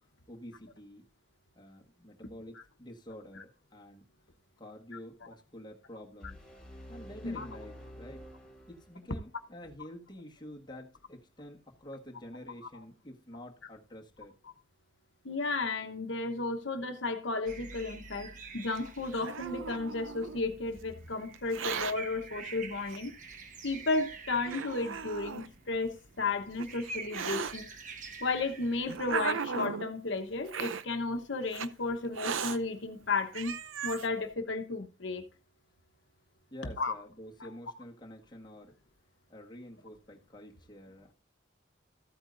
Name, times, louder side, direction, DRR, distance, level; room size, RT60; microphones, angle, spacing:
voice 1, 0.3-1.0 1.5-4.0 4.6-6.4 6.9-8.3 8.7-14.3 36.5-38.8 39.3-41.1, equal, 20° left, 1.6 m, -48 dB
sound 1, 6.2-9.3, equal, 5° left, 3.5 m, -49 dB
voice 2, 15.2-23.1 23.6-27.7 28.2-33.6 33.8-35.2 36.8-36.9 37.4-37.5, left 3 dB, 70° left, 1.1 m, -33 dB
sound 2, 17.5-29.2, right 4 dB, 40° right, 1.1 m, -47 dB
Hiss, 18.8-20.4 21.3-21.9 22.9-23.0 23.8-23.9 24.5-25.5 26.3-27.5 28.4-29.9 30.5-30.8 31.5-31.7 32.1-32.6 33.1-33.2 33.3-34.1, right 6 dB, 90° right, 0.6 m, -36 dB
14.0 x 8.6 x 2.6 m
head